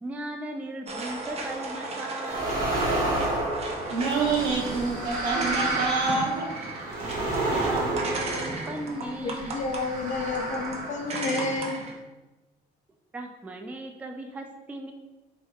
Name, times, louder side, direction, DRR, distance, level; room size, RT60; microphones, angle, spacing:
voice 1, 0.0-2.7 7.1-9.6 13.1-14.9, right 1 dB, 10° right, 3 dB, 0.3 m, -37 dB
sound 1, 0.9-11.9, right 2 dB, 40° right, 0.7 m, -36 dB
sound 2, 2.3-9.0 9.7-11.5, right 2 dB, 55° right, 1.2 m, -30 dB
voice 2, 3.9-6.5, right 4 dB, 85° right, -4 dB, 1.1 m, -27 dB
voice 3, 9.2-11.8, left 3 dB, 45° left, 3 dB, 0.6 m, -30 dB
4.1 x 3.4 x 2.3 m, 1.1 s
cardioid pair, 110°, 17 cm